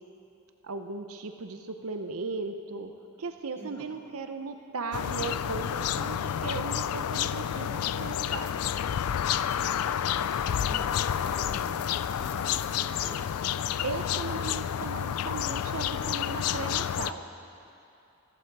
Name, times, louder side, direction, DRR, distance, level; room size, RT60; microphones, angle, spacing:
voice 1, 0.6-2.9 3.2-8.5 13.8-17.2, right 4 dB, 75° right, 7 dB, 0.7 m, -37 dB
voice 2, 3.5-3.9 10.7-13.2, equal, 10° left, -5 dB, 2.3 m, -47 dB
sound 1, 4.9-17.1, left 9 dB, 85° left, 0.4 m, -30 dB
14.5 x 14.5 x 4.7 m, 2.7 s
head